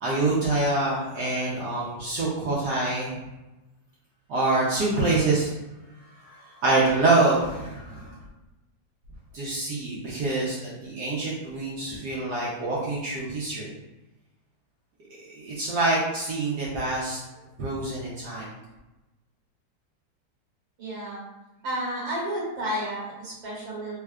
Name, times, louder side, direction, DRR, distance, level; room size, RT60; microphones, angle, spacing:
voice 1, 0.0-3.2 4.3-5.5 6.2-8.2 9.3-13.7 15.3-17.2 17.6-18.5, right 2 dB, 70° right, -6 dB, 1.2 m, -26 dB
voice 2, 20.8-21.2 21.6-24.0, right 1 dB, 90° right, -6 dB, 2.0 m, -31 dB
3.5 x 3.4 x 2.3 m, 1.0 s
omnidirectional pair, 2.0 m